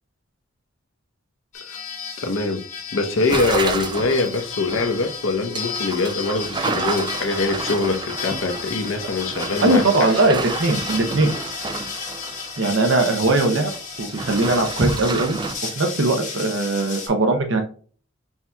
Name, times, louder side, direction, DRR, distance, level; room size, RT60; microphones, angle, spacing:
sound 1, 1.5-17.1, left 6 dB, 40° left, 1.4 m, -33 dB
voice 1, 2.2-2.7 2.9-10.1, left 3 dB, 85° left, 0.8 m, -23 dB
sound 2, 3.3-13.0 13.3-15.5, right 4 dB, 20° right, 0.3 m, -30 dB
voice 2, 9.6-11.3 12.6-13.7 14.0-15.4 15.8-17.6, right 2 dB, 65° right, 0.7 m, -20 dB
5.7 x 2.8 x 2.2 m
head